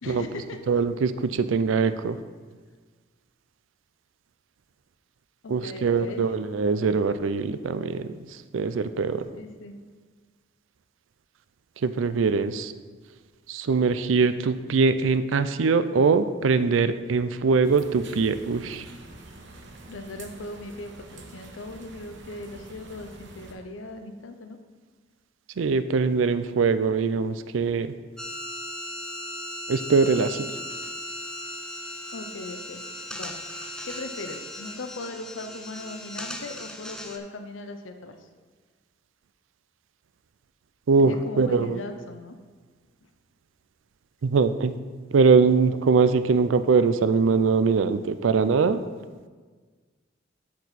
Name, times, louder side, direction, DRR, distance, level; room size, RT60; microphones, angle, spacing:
voice 1, 0.0-0.8 5.4-6.3 9.3-9.7 19.9-24.6 32.1-32.9 33.1-33.3 33.8-38.2 41.0-42.3, left 2 dB, 85° left, 7 dB, 0.6 m, -39 dB
voice 2, 0.7-2.2 5.5-8.1 8.5-9.2 11.8-12.7 13.5-18.8 25.6-27.9 29.7-30.5 40.9-41.8 44.2-44.8 45.1-48.8, right 4 dB, 85° right, 12 dB, 0.4 m, -22 dB
sound 1, 17.6-23.5, right 2 dB, 65° right, 1.0 m, -46 dB
sound 2, 28.2-37.2, left 1 dB, 5° left, 0.5 m, -37 dB
13.0 x 4.4 x 4.1 m, 1.5 s
head